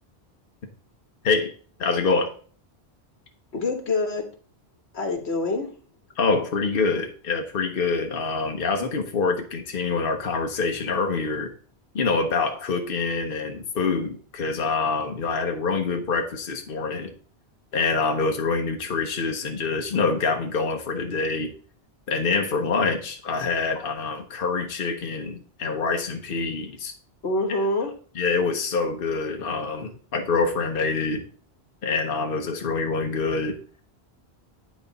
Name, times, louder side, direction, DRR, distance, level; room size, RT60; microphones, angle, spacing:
voice 1, 1.8-2.3 6.2-11.5 11.9-17.1 17.7-21.5 22.1-26.9 28.2-31.2 31.8-33.6, left 4 dB, 60° left, 3 dB, 1.1 m, -25 dB
voice 2, 3.5-4.3 4.9-5.7 23.7-23.8 27.2-27.9, left 2 dB, 85° left, 6 dB, 1.7 m, -26 dB
9.2 x 4.6 x 4.0 m, 0.41 s
omnidirectional pair, 1.1 m